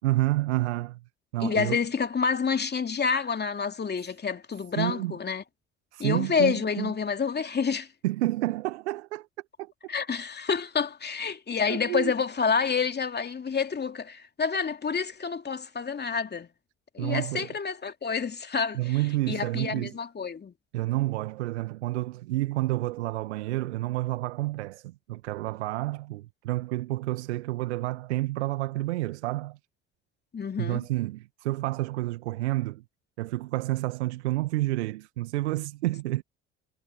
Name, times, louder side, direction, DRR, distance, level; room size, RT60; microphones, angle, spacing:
voice 1, 0.0-1.0 1.3-1.8 4.8-5.2 5.9-6.9 8.0-9.3 9.6-9.7 11.7-12.1 17.0-17.5 18.7-20.0 20.7-29.6 30.6-32.8 33.2-36.2, right 18 dB, 75° right, 1.9 m, -29 dB
voice 2, 1.4-5.4 6.0-7.9 9.9-16.5 16.9-18.9 19.3-20.5 30.3-30.8, left 6 dB, 30° left, 2.7 m, -28 dB
figure-of-eight pair, 50°, 34 cm